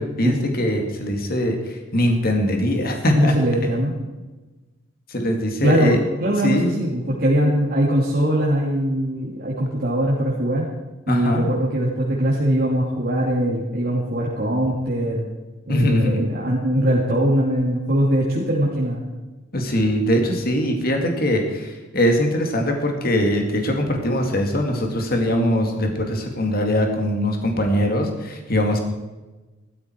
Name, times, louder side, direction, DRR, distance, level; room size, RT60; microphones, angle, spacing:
voice 1, 0.0-3.3 5.1-6.0 6.4-6.8 11.1-11.4 15.7-16.2 19.5-28.8, equal, 50° left, 3 dB, 2.3 m, -21 dB
voice 2, 3.1-3.9 5.6-6.0 6.2-10.6 11.1-15.2 15.7-19.0, right 1 dB, 50° right, -5 dB, 2.7 m, -21 dB
15.0 x 13.0 x 4.6 m, 1.2 s
head